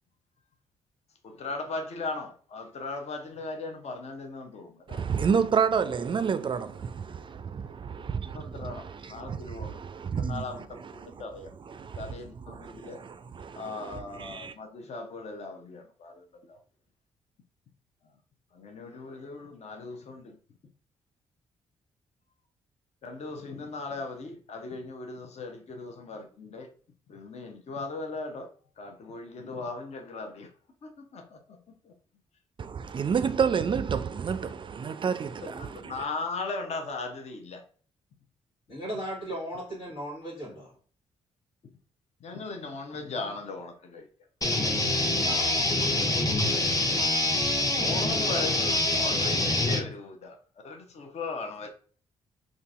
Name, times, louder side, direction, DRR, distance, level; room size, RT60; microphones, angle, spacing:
voice 1, 1.2-5.0 8.3-9.8 10.2-11.5 12.0-13.0 13.5-16.6 18.5-20.4 23.0-26.7 27.1-28.5 28.8-30.5 30.8-31.6 31.8-31.9 35.4-37.6 42.2-44.1 46.4-46.8 47.7-50.4 50.6-51.7, left 3 dB, 55° left, 0.7 m, -38 dB
voice 2, 4.9-10.5 10.8-11.2 11.6-14.5 32.6-36.0, right 6 dB, 40° right, 0.3 m, -30 dB
voice 3, 38.7-40.7 45.2-45.6, right 1 dB, 85° left, 1.5 m, -37 dB
sound 1, 44.4-49.8, left 2 dB, 25° left, 0.9 m, -25 dB
3.8 x 2.5 x 2.4 m
hypercardioid pair, 45°, 14 cm